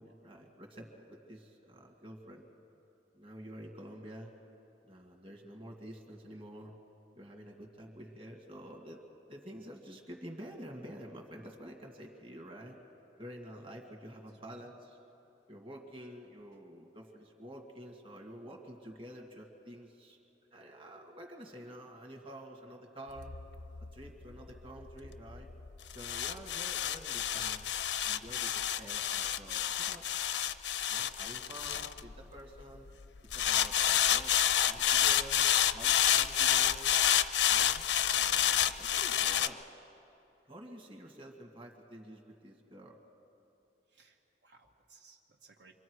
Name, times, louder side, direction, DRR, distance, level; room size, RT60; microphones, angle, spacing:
voice 1, 0.0-2.5 3.1-4.3 4.8-6.8 7.1-9.0 9.3-12.8 13.2-15.0 15.5-20.2 20.5-23.4 23.9-25.5 25.9-27.7 28.0-30.0 30.9-32.9 33.3-34.3 34.7-37.0 37.5-37.9 38.2-39.6 40.5-43.0, equal, 30° right, 1 dB, 1.8 m, -49 dB
sound 1, 23.2-32.6 33.3-39.5, left 10 dB, 85° left, 0.6 m, -29 dB
voice 2, 43.9-45.7, right 4 dB, 85° right, 0 dB, 2.2 m, -61 dB
27.5 x 23.5 x 4.7 m, 2.8 s
head